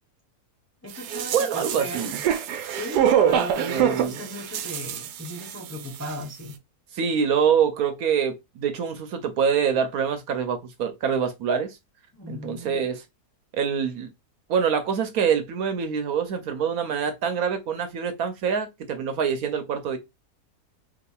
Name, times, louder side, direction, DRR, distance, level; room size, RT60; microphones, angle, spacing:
voice 1, 0.8-2.1 2.7-6.6 12.1-12.9, equal, 15° left, 0.7 m, -37 dB
sound 1, 1.0-5.8 6.0-6.1, right 9 dB, 85° right, 1.2 m, -25 dB
voice 2, 1.3-2.1 3.7-4.2 6.9-11.8 12.3-13.0 13.5-14.1 14.5-20.0, right 7 dB, 70° right, 1.1 m, -25 dB
4.4 x 2.8 x 2.3 m
omnidirectional pair, 1.7 m